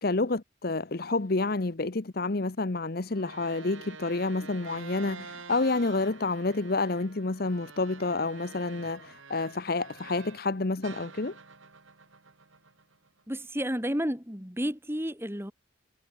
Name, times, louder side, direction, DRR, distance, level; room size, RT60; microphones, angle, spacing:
voice 1, 0.0-11.3, left 3 dB, 50° left, 0.9 m, -29 dB
sound 1, 3.1-10.5 10.8-13.2, right 4 dB, 90° right, 3.0 m, -48 dB
voice 2, 13.3-15.5, equal, 10° right, 4.5 m, -31 dB
head